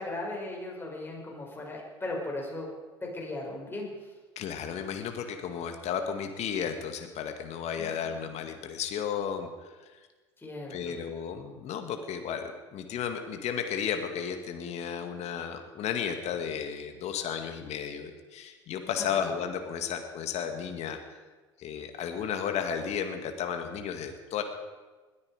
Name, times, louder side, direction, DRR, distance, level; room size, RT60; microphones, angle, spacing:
voice 1, 0.0-2.7 3.0-4.1 7.8-8.3 10.4-10.9 18.9-19.3, left 2 dB, 15° left, -1 dB, 6.2 m, -38 dB
voice 2, 4.4-9.5 10.7-21.2 21.6-24.4, left 7 dB, 50° left, 6 dB, 2.0 m, -33 dB
21.0 x 14.0 x 5.0 m, 1.3 s
hypercardioid pair, 70°, 14 cm